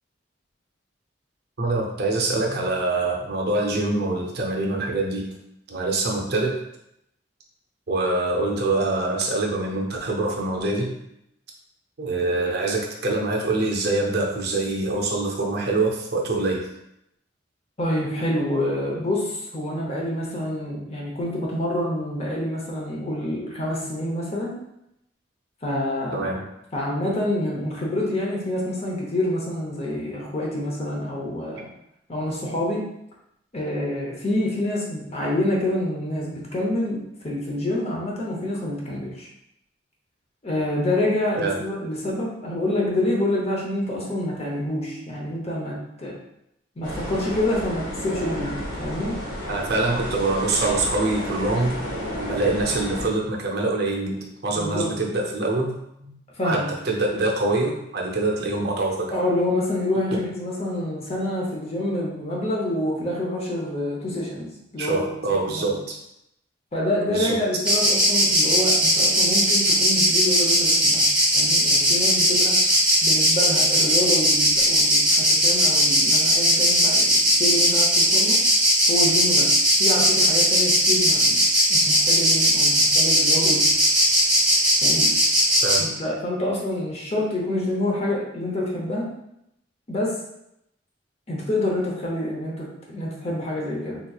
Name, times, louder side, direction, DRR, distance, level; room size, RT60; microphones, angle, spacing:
voice 1, 1.6-5.3 5.7-6.6 7.9-10.9 12.0-16.7 26.1-26.4 41.4-41.6 49.5-51.8 52.2-55.7 56.0-56.1 56.4-59.1 60.1-60.2 64.8-66.0 67.1-67.4 85.6-85.9, right 2 dB, 60° right, -1 dB, 0.6 m, -24 dB
voice 2, 17.8-24.6 25.6-26.3 26.7-31.7 32.1-32.8 33.5-39.3 40.4-46.2 46.8-49.2 54.6-54.9 56.4-56.7 59.1-65.0 65.5-65.8 66.7-71.0 71.3-72.6 73.0-78.4 78.9-79.5 79.8-81.4 81.7-83.7 84.8-85.1 85.8-89.1 89.9-90.2 91.3-94.0, left 1 dB, 35° left, -3 dB, 0.7 m, -27 dB
sound 1, 46.8-53.1, equal, 80° left, 1.3 m, -32 dB
Insect, 67.6-85.8, equal, 5° right, 0.9 m, -18 dB
3.7 x 3.0 x 2.3 m, 0.81 s
head